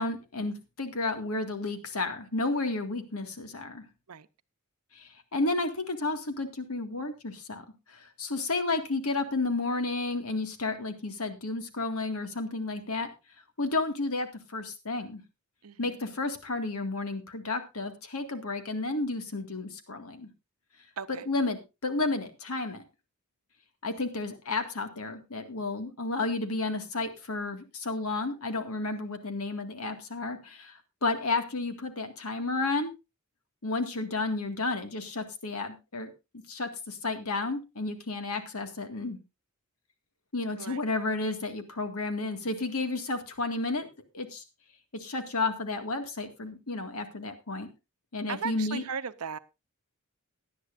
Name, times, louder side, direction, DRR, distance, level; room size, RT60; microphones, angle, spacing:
voice 1, 0.0-3.8 4.9-7.6 7.9-13.1 13.6-15.2 15.8-20.3 21.1-22.8 23.8-32.9 33.6-36.1 36.5-39.2 40.3-43.9 44.1-44.4 44.9-47.7 48.1-48.8, left 3 dB, 75° left, 7 dB, 2.0 m, -32 dB
voice 2, 15.6-16.0 21.0-21.2 40.6-40.8 48.3-49.4, right 6 dB, 85° right, 13 dB, 0.8 m, -37 dB
17.5 x 11.0 x 2.6 m, 0.26 s
head